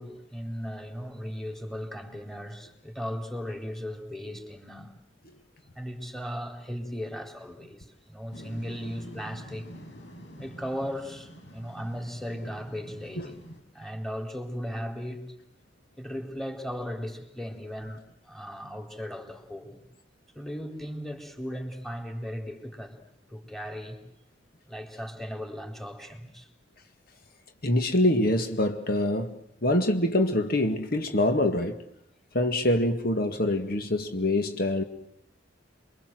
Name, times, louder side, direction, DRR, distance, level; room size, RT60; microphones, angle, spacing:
voice 1, 0.0-4.9 5.7-9.7 10.4-13.4 13.7-15.3 16.0-19.8 20.3-23.0 23.3-24.0 24.7-26.5, equal, ahead, 4.3 m, -37 dB
sound 1, 8.3-13.6, equal, 75° left, 6.5 m, -46 dB
voice 2, 27.6-31.8 32.3-34.8, left 1 dB, 55° left, 2.0 m, -25 dB
28.5 x 23.5 x 7.9 m
head